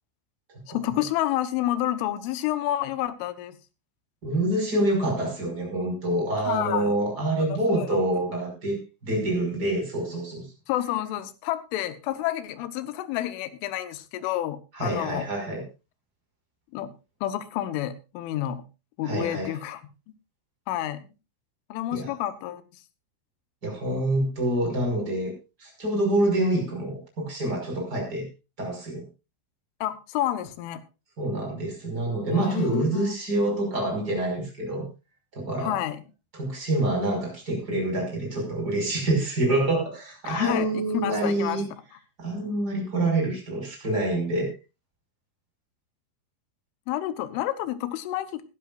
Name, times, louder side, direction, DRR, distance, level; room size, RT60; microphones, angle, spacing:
voice 1, 0.7-3.6 6.5-7.0 7.4-8.0 10.7-15.3 16.7-16.9 17.2-18.6 19.0-19.8 20.7-21.1 21.7-22.6 29.8-30.8 32.3-33.2 35.6-36.0 40.3-41.6 46.9-48.4, left 13 dB, 75° left, 13 dB, 3.3 m, -29 dB
voice 2, 4.2-8.8 9.0-10.5 14.7-15.6 19.0-19.5 21.9-22.1 23.6-25.3 25.6-28.3 28.6-29.0 31.2-34.9 35.3-35.8 36.3-41.6 42.2-44.5, right 1 dB, 20° right, 2 dB, 5.6 m, -26 dB
20.5 x 12.0 x 2.5 m, 0.28 s
omnidirectional pair, 6.0 m